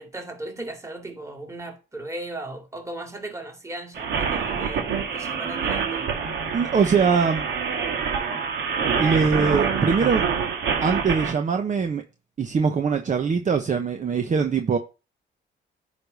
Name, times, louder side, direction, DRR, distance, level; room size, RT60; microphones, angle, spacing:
voice 1, 0.0-6.1, right 1 dB, 15° right, 2.4 m, -37 dB
sound 1, 3.9-11.3, right 6 dB, 65° right, 2.1 m, -26 dB
voice 2, 6.5-7.5 9.0-10.3 10.8-12.0 12.4-14.8, right 5 dB, 40° right, 1.0 m, -22 dB
9.7 x 3.4 x 5.4 m
cardioid pair, 90°, 20 cm